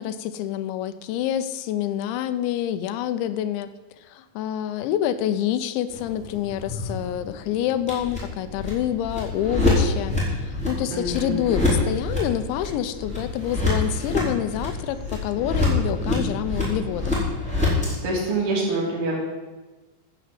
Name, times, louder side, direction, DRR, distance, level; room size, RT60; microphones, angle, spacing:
voice 1, 0.0-3.7 4.0-17.3, left 10 dB, 85° left, 11 dB, 3.1 m, -27 dB
sound 1, 5.9-17.9, left 2 dB, ahead, 4.4 m, -26 dB
voice 2, 10.9-11.4 18.0-19.2, right 2 dB, 85° right, -3 dB, 5.7 m, -25 dB
14.0 x 6.6 x 7.8 m, 1.2 s
omnidirectional pair, 5.1 m